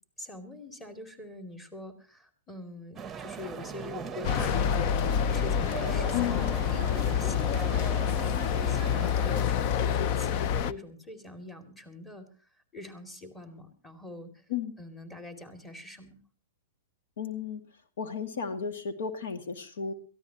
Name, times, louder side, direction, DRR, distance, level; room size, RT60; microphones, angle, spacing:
voice 1, 0.2-5.0 5.3-12.3 12.7-14.4 14.8-16.2, left 2 dB, 10° left, 6 dB, 2.6 m, -44 dB
sound 1, 3.0-9.5, right 6 dB, 15° right, 1.0 m, -39 dB
sound 2, 4.2-10.7, left 8 dB, 45° left, 0.7 m, -27 dB
voice 2, 6.1-6.5 14.5-14.7 17.2-17.6 18.0-19.9, left 7 dB, 75° left, 7 dB, 2.2 m, -33 dB
22.0 x 15.0 x 2.9 m, 0.39 s
hypercardioid pair, 135°, 0 cm